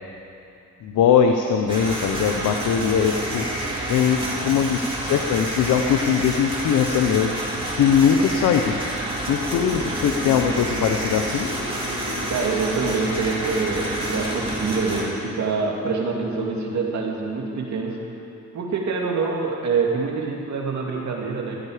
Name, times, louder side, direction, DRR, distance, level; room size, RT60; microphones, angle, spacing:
voice 1, 0.8-7.3 7.7-8.8 9.3-11.5, left 7 dB, 85° left, 4 dB, 0.9 m, -21 dB
sound 1, 1.7-15.0, right 1 dB, 15° right, 3.2 m, -29 dB
sound 2, 9.5-18.5, left 1 dB, 25° left, 2.6 m, -35 dB
voice 2, 12.3-18.0 18.5-21.7, right 4 dB, 65° right, -1 dB, 2.4 m, -26 dB
15.5 x 13.5 x 5.0 m, 2.7 s
cardioid pair, 100°, 30 cm